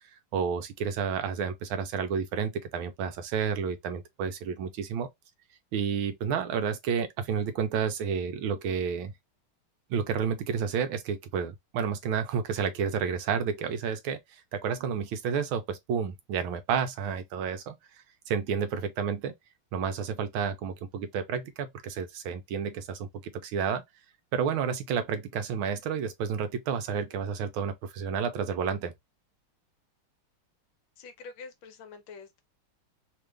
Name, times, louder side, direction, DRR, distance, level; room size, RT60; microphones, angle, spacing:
voice 1, 0.3-5.1 5.7-9.1 9.9-14.2 14.5-17.7 18.3-19.3 19.7-23.1 23.3-23.8 24.3-28.9, right 7 dB, 80° right, 1.4 m, -30 dB
voice 2, 31.0-32.4, left 4 dB, 70° left, 1.4 m, -46 dB
3.6 x 2.4 x 3.2 m
omnidirectional pair, 2.3 m